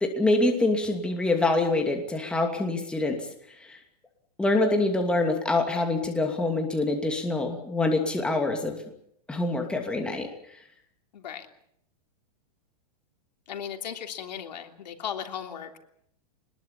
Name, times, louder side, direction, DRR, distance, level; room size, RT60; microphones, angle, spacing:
voice 1, 0.0-3.2 3.7-3.8 4.4-8.8 9.3-10.3, left 2 dB, 5° left, 3 dB, 2.7 m, -25 dB
voice 2, 11.1-11.5 13.5-15.8, left 8 dB, 85° left, 5 dB, 3.2 m, -36 dB
23.5 x 21.0 x 7.3 m, 0.72 s
supercardioid pair, 155°, 21 cm